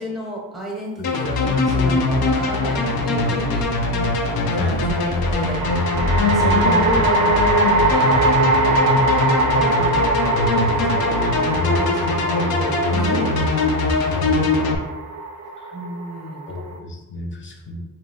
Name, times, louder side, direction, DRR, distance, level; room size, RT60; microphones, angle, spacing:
voice 1, 0.0-3.7 4.0-5.6 6.2-8.3 9.4-10.0 10.7-13.3 15.7-16.4, equal, ahead, -3 dB, 1.1 m, -31 dB
sound 1, 1.0-14.7, left 3 dB, 90° left, 0.6 m, -21 dB
sound 2, 2.3-3.0 5.4-16.8, right 2 dB, 55° right, 0.5 m, -22 dB
voice 2, 6.4-7.4 10.6-11.1 14.1-14.7 15.6-15.7 16.5-17.8, left 2 dB, 35° left, 2 dB, 0.6 m, -30 dB
3.9 x 2.7 x 3.5 m, 1.0 s
cardioid pair, 125°, 35 cm